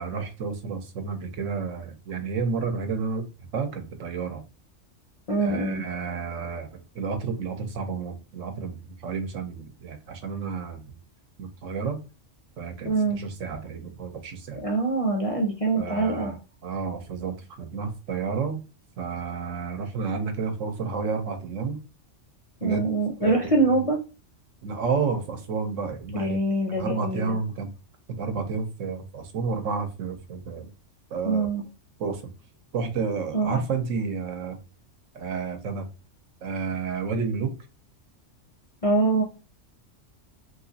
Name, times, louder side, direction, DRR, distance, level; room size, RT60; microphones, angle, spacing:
voice 1, 0.0-3.3 3.5-4.4 5.4-10.9 11.4-12.0 12.6-14.6 15.8-16.4 16.6-18.6 19.0-21.8 22.6-22.8 23.2-23.8 24.6-26.4 26.7-27.7 28.2-30.7 31.1-31.5 32.0-32.3 32.7-34.6 35.1-35.9 36.4-37.5, right 5 dB, 85° right, 6 dB, 1.1 m, -31 dB
voice 2, 5.3-5.8 12.8-13.2 14.6-16.4 22.6-24.0 26.1-27.4 31.2-31.6 33.3-33.6 38.8-39.2, right 3 dB, 40° left, 0 dB, 0.5 m, -24 dB
3.3 x 2.9 x 2.7 m, 0.32 s
omnidirectional pair, 1.3 m